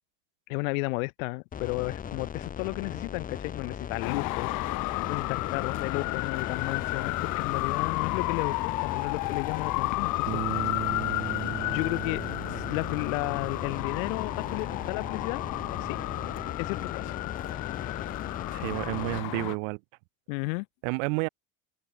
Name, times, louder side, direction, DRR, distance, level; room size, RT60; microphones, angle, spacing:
voice 1, 0.5-10.7 11.7-12.2 12.5-15.4 15.8-16.0 16.6-17.2 20.3-20.7, left 30 dB, 85° left, 0.6 m, -33 dB
sound 1, 1.5-19.2, left 8 dB, 20° left, 1.9 m, -38 dB
Traffic noise roadway noise, 4.0-19.6, left 24 dB, 50° left, 1.5 m, -32 dB
Bass guitar, 10.3-16.5, right 14 dB, 30° right, 0.8 m, -39 dB
voice 2, 18.5-19.8 20.8-21.3, right 35 dB, 70° right, 0.9 m, -30 dB
open air
cardioid pair, 165°, 39 cm